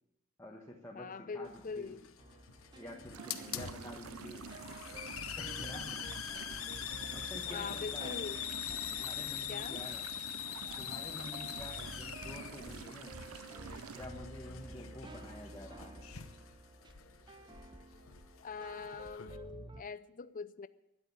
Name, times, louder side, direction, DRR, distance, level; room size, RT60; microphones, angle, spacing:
voice 1, 0.4-2.0 2.7-4.5 5.4-6.0 7.1-8.2 8.9-10.1 10.8-13.2 13.9-16.0, left 1 dB, 15° left, 1.5 m, -49 dB
voice 2, 1.0-2.0 7.5-8.4 9.5-9.8 18.4-20.7, left 5 dB, 40° left, 0.6 m, -43 dB
Hiss, 1.5-19.4, left 10 dB, 80° left, 0.9 m, -44 dB
sound 1, 2.2-19.8, right 2 dB, 20° right, 0.5 m, -52 dB
sound 2, 3.1-14.1, right 7 dB, 90° right, 0.5 m, -49 dB
12.5 x 11.0 x 8.7 m
head